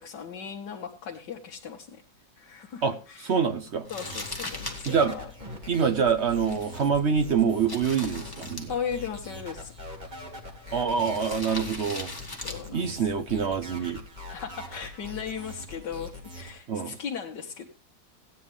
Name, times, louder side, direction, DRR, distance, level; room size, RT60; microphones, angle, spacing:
voice 1, 0.0-2.0 2.4-3.3 3.9-5.3 8.7-9.7 10.5-10.7 12.4-13.2 13.8-14.0 14.3-17.7, left 7 dB, 70° left, 0 dB, 1.7 m, -37 dB
voice 2, 2.8-3.9 4.9-5.1 5.7-8.7 10.7-12.1 12.7-14.0 16.7-17.0, right 6 dB, 60° right, 8 dB, 0.7 m, -26 dB
Crumpling crinkling, 3.8-14.0, left 2 dB, 10° left, 1.6 m, -42 dB
sound 1, 4.0-16.5, left 2 dB, 25° right, 2.2 m, -43 dB
15.5 x 9.3 x 3.4 m, 0.34 s
omnidirectional pair, 2.0 m